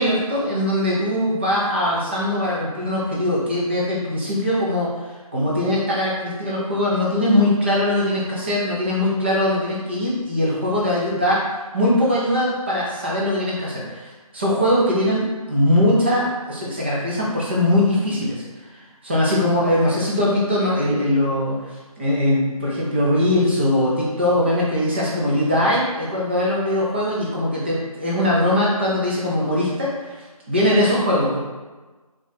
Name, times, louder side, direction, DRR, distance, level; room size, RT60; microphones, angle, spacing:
voice 1, 0.0-4.9 5.3-18.4 18.7-21.6 22.0-30.2 30.5-31.4, left 1 dB, 20° right, -5 dB, 0.6 m, -21 dB
3.9 x 2.4 x 4.0 m, 1.2 s
figure-of-eight pair, 160°, 19 cm